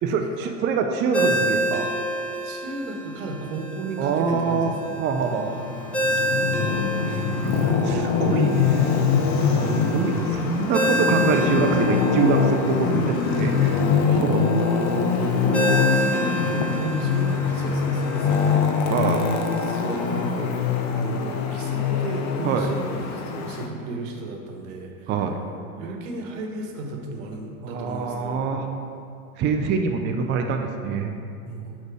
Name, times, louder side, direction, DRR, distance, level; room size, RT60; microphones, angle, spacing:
voice 1, 0.0-1.9 4.0-4.7 5.0-5.6 7.4-8.9 9.4-14.4 14.9-15.1 18.9-19.3 22.4-22.7 25.1-25.3 27.6-28.7 29.4-31.1, right 5 dB, 25° right, 4 dB, 0.4 m, -25 dB
Ringtone, 1.1-20.3, right 1 dB, 5° left, 0.9 m, -30 dB
voice 2, 2.4-5.0 7.0-7.3 8.4-8.6 14.1-14.5 15.2-18.9 19.4-20.6 20.9-25.1 25.8-28.5 31.5-31.8, right 2 dB, 65° right, 2 dB, 1.2 m, -34 dB
Traffic noise roadway noise, 5.2-23.7, left 5 dB, 40° left, 0.7 m, -23 dB
6.4 x 4.2 x 4.7 m, 2.5 s
hypercardioid pair, 95°, 42 cm